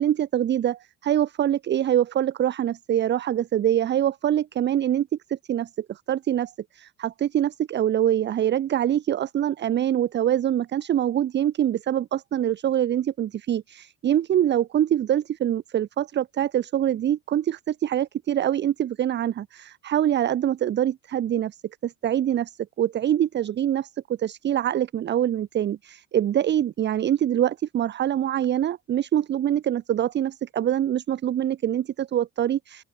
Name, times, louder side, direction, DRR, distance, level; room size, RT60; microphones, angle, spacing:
voice 1, 0.0-21.6 21.8-23.9 24.2-32.8, right 11 dB, 30° right, 0.5 m, -24 dB
open air
cardioid pair, 160°, 34 cm